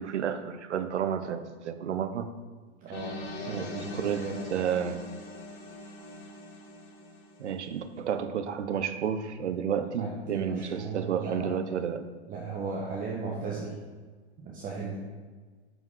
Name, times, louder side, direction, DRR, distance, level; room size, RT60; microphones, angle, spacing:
voice 1, 0.0-2.3 3.5-3.7 4.0-5.1 7.4-12.0, right 8 dB, 90° right, 9 dB, 0.7 m, -31 dB
voice 2, 2.8-4.4 10.0-11.6 12.3-13.7 14.4-15.0, right 4 dB, 25° right, -3 dB, 1.0 m, -36 dB
sound 1, 2.9-7.8, left 2 dB, 30° left, 1.6 m, -42 dB
7.8 x 5.3 x 3.7 m, 1.5 s
hypercardioid pair, 120°, 34 cm